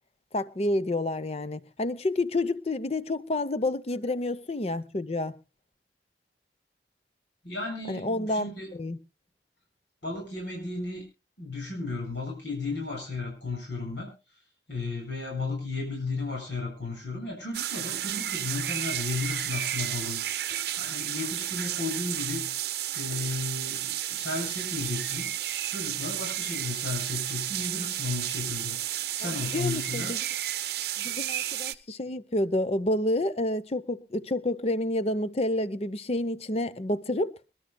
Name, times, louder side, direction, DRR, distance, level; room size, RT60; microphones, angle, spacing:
voice 1, 0.3-5.4 7.9-9.0 29.2-30.2 31.0-37.3, left 1 dB, 35° left, 0.7 m, -29 dB
voice 2, 7.4-8.7 10.0-11.0 11.4-14.1 14.7-22.5 22.9-25.3 25.7-30.1, left 3 dB, 80° left, 7.4 m, -34 dB
sound 1, 17.5-31.8, right 12 dB, 60° right, 0.7 m, -32 dB
26.0 x 12.5 x 2.2 m
head